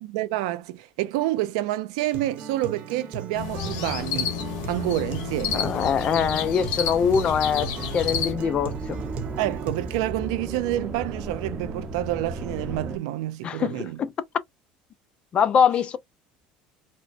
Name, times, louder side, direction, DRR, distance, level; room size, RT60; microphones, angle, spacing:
voice 1, 0.0-4.3 4.7-5.7 9.4-14.0, right 15 dB, 85° right, 0.5 m, -28 dB
Acoustic guitar, 2.1-10.1, right 6 dB, 55° right, 1.0 m, -38 dB
sound 1, 3.3-8.3, left 7 dB, 80° left, 1.1 m, -30 dB
sound 2, 5.0-13.0, right 3 dB, 30° right, 0.8 m, -36 dB
voice 2, 5.5-9.0 13.4-14.1 15.3-16.0, left 7 dB, 35° left, 0.5 m, -23 dB
4.2 x 2.2 x 2.5 m
cardioid pair, 125°, 3 cm